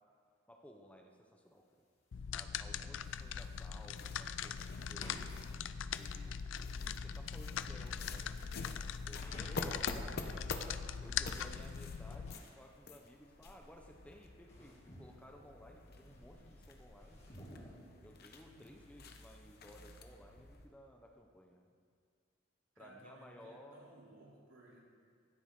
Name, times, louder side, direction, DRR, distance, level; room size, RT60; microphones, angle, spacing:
voice 1, 0.5-1.6 2.3-5.5 6.0-6.7 7.0-8.7 9.1-10.5 10.8-17.3 18.0-21.7 22.8-23.8, equal, 5° left, 2 dB, 0.9 m, -57 dB
sound 1, 1.5-20.6, equal, 35° left, 2.5 m, -59 dB
sound 2, 2.1-12.3, left 7 dB, 70° left, 0.5 m, -41 dB
sound 3, 3.0-20.7, left 3 dB, 55° left, 1.0 m, -50 dB
voice 2, 22.7-24.8, right 1 dB, 80° right, -4 dB, 3.3 m, -58 dB
16.0 x 13.0 x 3.8 m, 2.1 s
head